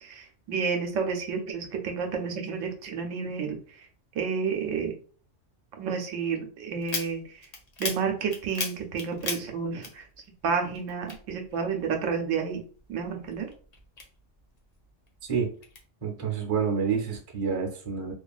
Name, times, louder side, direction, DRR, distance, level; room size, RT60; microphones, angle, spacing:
voice 1, 0.0-3.6 4.1-4.9 5.8-7.2 7.8-10.1 10.4-12.6 12.9-13.5, right 6 dB, 85° right, 3 dB, 1.0 m, -30 dB
sound 1, 6.8-10.5 10.7-12.1 12.5-14.6 15.1-15.8, left 3 dB, 50° left, 0.5 m, -36 dB
voice 2, 15.2-15.5 16.0-18.1, right 6 dB, 35° right, 0 dB, 0.6 m, -28 dB
2.8 x 2.3 x 2.3 m, 0.41 s
omnidirectional pair, 1.3 m